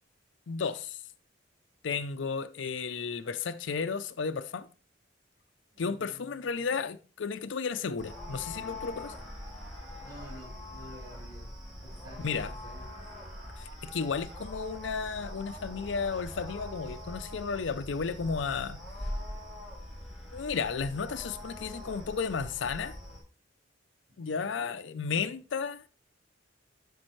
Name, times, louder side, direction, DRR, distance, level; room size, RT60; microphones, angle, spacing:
voice 1, 0.5-1.0 1.8-4.7 5.8-9.1 12.2-12.5 13.6-18.8 20.3-23.0 24.2-25.8, left 5 dB, 65° left, 0.5 m, -33 dB
voice 2, 5.7-6.7 10.0-11.5 11.8-12.9 24.1-24.7, equal, 20° right, 5.0 m, -51 dB
sound 1, 8.0-23.2, left 1 dB, ahead, 4.3 m, -42 dB
12.0 x 5.3 x 3.1 m
head